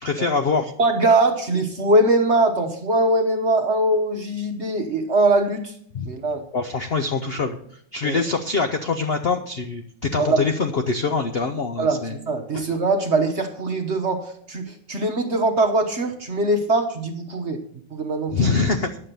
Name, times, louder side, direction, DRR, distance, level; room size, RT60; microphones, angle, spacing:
voice 1, 0.0-0.7 5.9-6.1 6.5-7.6 7.9-12.1 12.5-12.6 18.3-19.0, left 4 dB, 65° left, 6 dB, 0.6 m, -24 dB
voice 2, 0.8-5.7 6.0-6.4 8.0-8.2 10.2-10.4 11.8-17.6 17.9-18.5, right 2 dB, 45° right, 4 dB, 1.1 m, -21 dB
10.0 x 7.5 x 6.7 m, 0.65 s
omnidirectional pair, 2.0 m